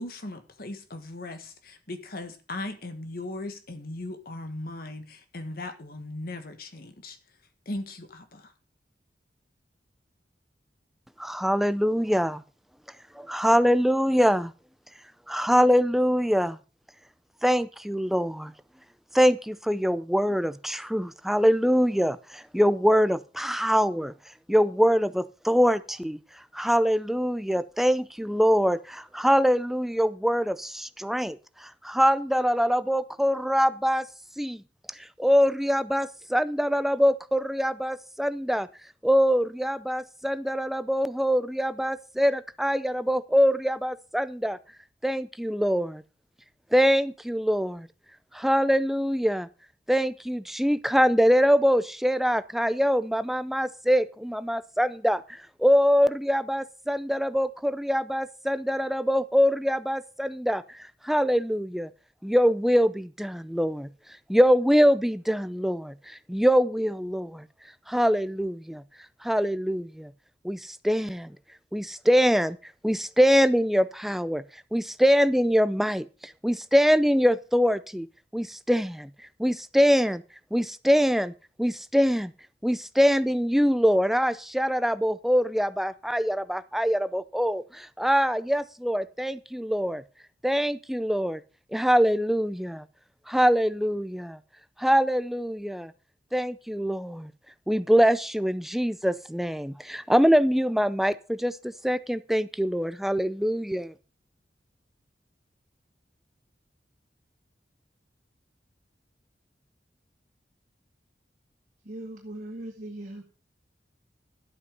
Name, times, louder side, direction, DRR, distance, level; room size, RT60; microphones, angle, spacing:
voice 1, 0.0-7.2 7.6-8.5, left 2 dB, 55° left, 1.6 m, -38 dB
voice 2, 11.2-12.4 13.1-14.5 15.3-16.6 17.4-18.5 19.1-24.1 24.5-34.1 34.4-34.6 34.9-38.7 39.0-44.6 45.0-46.0 46.7-47.9 48.3-49.5 49.9-61.9 62.2-63.9 64.3-67.5 67.9-68.8 69.2-70.1 70.4-71.4 71.7-78.1 78.3-79.1 79.4-80.2 80.5-81.3 81.6-82.3 82.6-90.0 90.4-91.4 91.7-92.8 93.3-94.4 94.8-95.9 96.3-97.3 97.7-103.9, equal, ahead, 0.5 m, -24 dB
voice 3, 111.8-113.2, right 1 dB, 45° right, 2.1 m, -39 dB
12.5 x 8.4 x 5.3 m
head